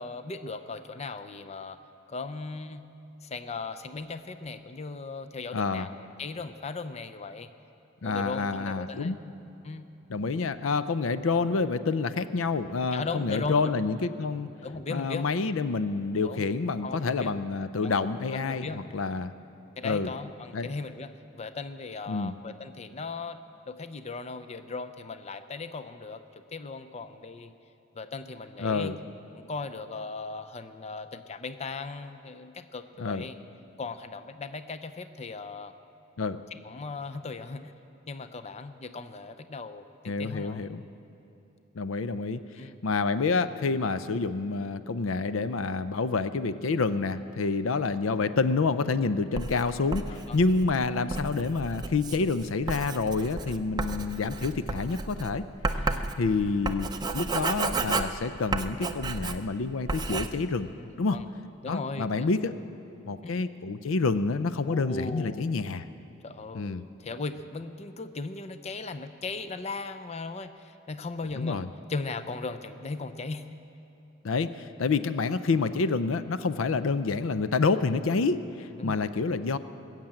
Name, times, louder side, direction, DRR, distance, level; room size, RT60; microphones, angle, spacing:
voice 1, 0.0-1.8 2.1-2.8 3.2-7.5 8.0-9.2 9.6-9.9 12.9-13.7 14.6-15.3 16.2-16.5 16.8-17.3 17.8-18.0 18.3-18.8 19.8-26.2 26.5-27.5 28.0-29.0 29.4-33.4 33.8-35.7 36.6-37.7 38.1-40.7 42.6-42.7 50.1-50.4 55.7-56.2 60.8-61.3 61.6-62.3 63.2-63.4 64.7-65.6 66.2-73.6 78.7-79.1, left 3 dB, 35° left, 11 dB, 0.5 m, -38 dB
voice 2, 5.5-5.9 8.0-9.2 10.1-14.5 14.9-19.3 19.8-20.1 20.5-20.7 22.1-22.3 28.6-29.0 33.0-33.2 36.2-36.4 40.0-40.8 41.8-42.4 42.8-55.5 56.2-60.7 61.0-61.2 61.7-62.5 63.0-65.8 66.5-66.8 71.4-71.7 74.2-79.6, left 4 dB, 80° left, 13 dB, 0.5 m, -28 dB
Writing, 49.3-59.6 59.9-60.3, right 3 dB, 20° right, 0.5 m, -33 dB
20.5 x 7.5 x 8.9 m, 2.9 s
head